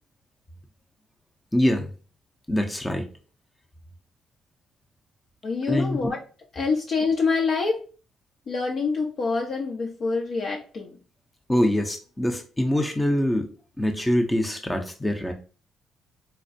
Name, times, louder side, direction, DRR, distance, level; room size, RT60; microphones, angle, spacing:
voice 1, 1.5-1.9 2.5-3.1 5.7-6.1 11.5-13.5 13.8-15.3, left 1 dB, 10° left, 0.6 m, -24 dB
voice 2, 5.4-6.2 6.5-7.8 8.5-11.0, left 4 dB, 60° left, 0.7 m, -26 dB
4.3 x 2.3 x 2.5 m
cardioid pair, 90°, 0 cm